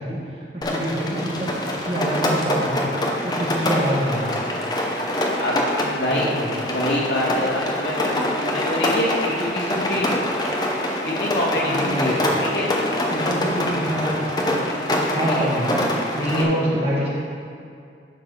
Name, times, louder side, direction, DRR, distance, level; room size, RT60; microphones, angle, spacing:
voice 1, 0.0-2.9 3.2-4.3 6.0-6.5 11.5-12.5 13.1-14.7 15.1-17.1, equal, 35° right, -5 dB, 1.6 m, -26 dB
Rain, 0.6-16.4, left 1 dB, 20° left, 0.7 m, -25 dB
voice 2, 5.9-6.3 6.7-10.1 11.0-12.7 15.3-15.4 16.2-16.5, left 1 dB, 70° left, -5 dB, 2.1 m, -25 dB
11.5 x 3.9 x 5.4 m, 2.4 s
head